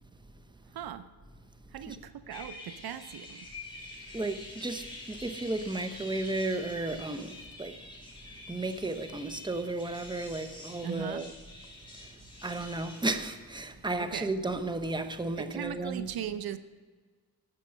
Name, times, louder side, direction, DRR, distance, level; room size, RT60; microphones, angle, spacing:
voice 1, 0.7-1.1 1.7-3.5 10.8-11.2 14.0-14.3 15.4-16.6, right 9 dB, 80° right, 0.8 m, -38 dB
sound 1, 2.3-13.0, left 2 dB, 15° left, 4.5 m, -47 dB
voice 2, 4.1-7.8 8.5-11.3 12.4-16.1, right 2 dB, 10° right, 1.0 m, -33 dB
13.0 x 8.5 x 6.5 m
cardioid pair, 75°, 36 cm